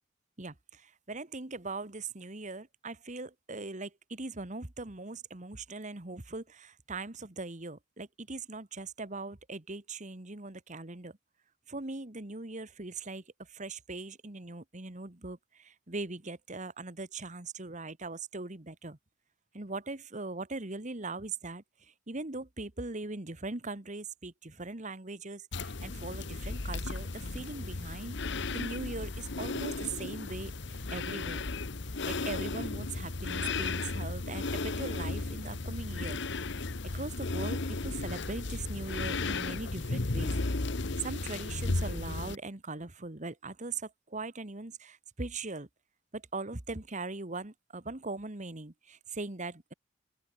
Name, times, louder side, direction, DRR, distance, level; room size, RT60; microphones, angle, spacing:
voice 1, 0.4-11.2 11.7-19.0 19.5-28.2 28.5-31.5 32.1-36.2 36.9-40.3 41.0-45.7 46.1-49.7, right 3 dB, 40° right, 1.6 m, -40 dB
sound 1, 25.5-42.3, left 3 dB, 60° left, 1.2 m, -35 dB
open air
head